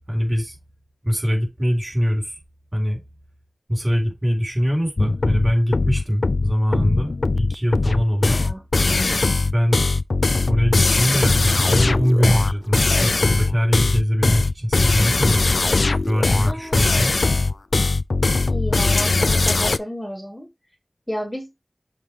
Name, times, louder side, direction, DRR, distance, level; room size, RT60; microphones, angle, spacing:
voice 1, 0.1-0.6 1.0-2.4 2.7-3.0 3.7-8.4 9.5-9.8 10.5-15.5 16.1-17.2, equal, 35° right, 4.2 m, -22 dB
sound 1, 5.0-19.8, left 3 dB, 80° left, 0.3 m, -20 dB
voice 2, 8.2-8.6 16.5-16.8 18.5-20.5 21.1-21.5, equal, 10° left, 1.6 m, -31 dB
7.3 x 2.9 x 4.7 m
wide cardioid pair, 60°, 0 cm